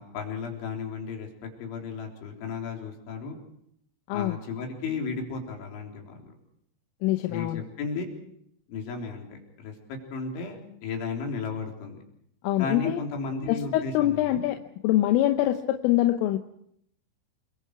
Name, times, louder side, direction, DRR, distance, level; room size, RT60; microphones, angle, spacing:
voice 1, 0.0-3.4 4.1-6.3 7.3-8.1 8.7-12.0 12.6-14.4, left 4 dB, 70° left, 1 dB, 6.1 m, -34 dB
voice 2, 7.0-7.6 12.4-13.0 13.5-14.6 14.8-16.4, left 14 dB, 90° left, 5 dB, 3.6 m, -24 dB
28.5 x 23.5 x 4.8 m, 0.72 s
omnidirectional pair, 5.6 m